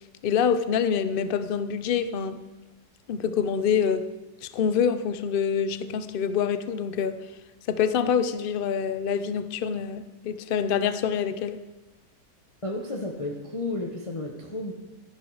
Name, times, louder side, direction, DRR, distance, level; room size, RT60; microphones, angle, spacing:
voice 1, 0.2-2.4 3.1-4.1 4.4-7.2 7.7-11.6, left 7 dB, 60° left, 0.5 m, -26 dB
voice 2, 12.6-14.7, left 2 dB, 25° left, 1.0 m, -32 dB
13.5 x 11.0 x 4.8 m
omnidirectional pair, 1.8 m